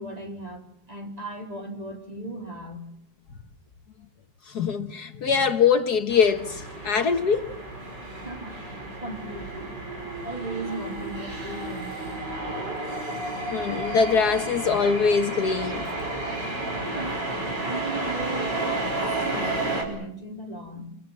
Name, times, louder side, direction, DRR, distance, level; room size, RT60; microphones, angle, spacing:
voice 1, 0.0-2.9 8.1-8.6 9.0-9.8 10.2-12.3 16.8-17.3 17.6-18.7 19.0-20.9, right 2 dB, 20° right, 4.3 m, -37 dB
voice 2, 4.5-7.5 13.5-15.9, left 6 dB, 60° left, 1.7 m, -23 dB
sound 1, 6.1-19.8, right 2 dB, 70° right, 6.1 m, -32 dB
28.0 x 23.5 x 7.4 m
omnidirectional pair, 1.9 m